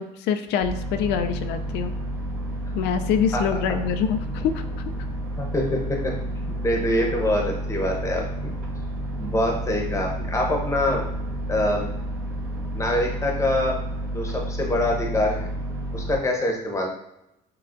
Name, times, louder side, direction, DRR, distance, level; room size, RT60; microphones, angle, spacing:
voice 1, 0.0-1.9 2.7-4.8, left 7 dB, 85° left, 8 dB, 0.4 m, -25 dB
sound 1, 0.6-16.2, right 1 dB, 55° right, 1.5 m, -30 dB
voice 2, 5.4-6.1 6.4-8.5 9.2-11.0 11.5-11.8 12.7-13.7 14.1-15.5 15.9-16.9, left 1 dB, 15° left, 1 dB, 0.8 m, -25 dB
5.6 x 2.3 x 2.5 m, 0.84 s
cardioid pair, 110°, 17 cm